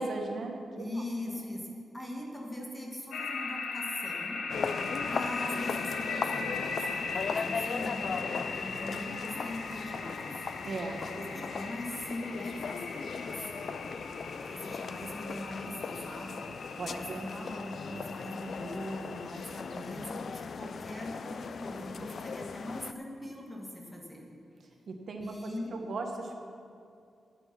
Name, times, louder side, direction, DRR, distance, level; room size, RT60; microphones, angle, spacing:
voice 1, 0.0-0.8 10.6-11.0 16.8-17.2 24.9-26.3, right 3 dB, 50° right, 3 dB, 1.1 m, -37 dB
voice 2, 0.7-4.4 5.1-10.3 11.0-13.8 14.4-16.5 16.8-24.3 25.2-25.8, left 1 dB, 10° left, -1 dB, 1.6 m, -41 dB
sound 1, 3.1-19.9, left 4 dB, 85° left, 1.1 m, -39 dB
sound 2, 4.5-22.9, left 5 dB, 50° left, 0.4 m, -38 dB
11.5 x 9.2 x 6.0 m, 2.4 s
wide cardioid pair, 165°, 0 cm